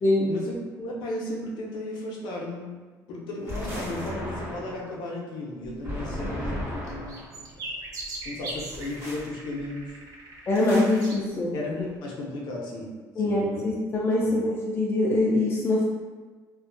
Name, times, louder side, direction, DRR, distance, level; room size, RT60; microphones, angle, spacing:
voice 1, 0.3-2.8 3.1-7.5 8.2-10.0 11.5-12.9 13.2-13.7 14.2-14.4, left 2 dB, 75° left, -3 dB, 0.6 m, -35 dB
sound 1, 3.5-4.9 5.8-7.3 8.7-9.3 10.5-11.1, equal, 30° right, 1.0 m, -36 dB
sound 2, 5.6-11.2 11.8-11.9, right 1 dB, 50° right, 0.5 m, -39 dB
voice 2, 10.5-11.5 13.2-15.9, left 2 dB, 30° left, -4 dB, 0.4 m, -23 dB
2.5 x 2.2 x 2.5 m, 1.4 s
cardioid pair, 130°, 8 cm